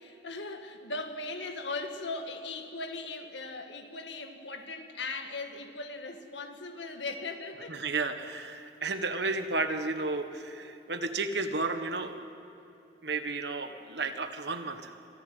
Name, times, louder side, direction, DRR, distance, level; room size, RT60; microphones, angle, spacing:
voice 1, 0.0-7.8, left 3 dB, 75° left, 6 dB, 1.9 m, -38 dB
voice 2, 7.7-12.1 13.0-14.9, right 3 dB, 65° right, 8 dB, 1.5 m, -32 dB
26.0 x 14.5 x 9.2 m, 2.9 s
head